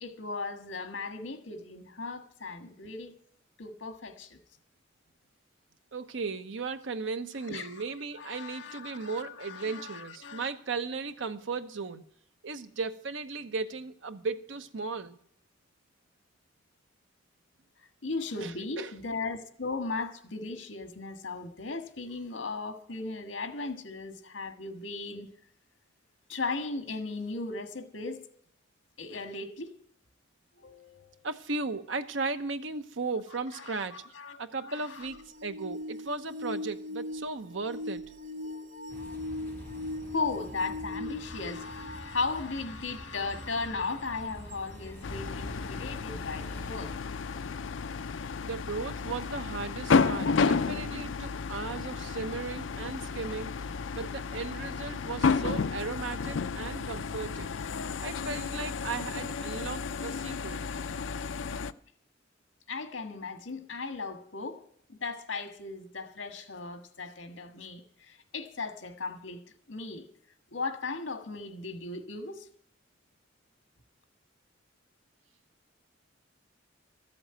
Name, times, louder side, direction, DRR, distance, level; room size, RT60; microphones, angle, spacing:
voice 1, 0.0-3.2 3.6-4.4 7.5-7.8 8.1-10.5 18.0-25.3 26.3-28.2 29.0-29.7 30.6-31.2 33.5-35.1 40.1-46.9 62.7-64.6 64.9-69.4 69.7-70.1 70.5-72.5, left 3 dB, 90° left, 1.6 m, -37 dB
voice 2, 5.9-12.0 12.4-15.2 18.4-18.5 18.8-18.9 31.2-34.0 34.4-38.0 48.4-57.6 58.0-60.7, right 4 dB, 75° right, 0.9 m, -36 dB
sound 1, 35.0-42.7 43.4-43.5 44.5-44.6, left 2 dB, 40° right, 0.7 m, -40 dB
sound 2, 38.9-47.0, equal, 10° left, 4.4 m, -46 dB
sound 3, 45.0-61.7, left 5 dB, 75° left, 0.5 m, -32 dB
14.0 x 7.8 x 9.0 m
head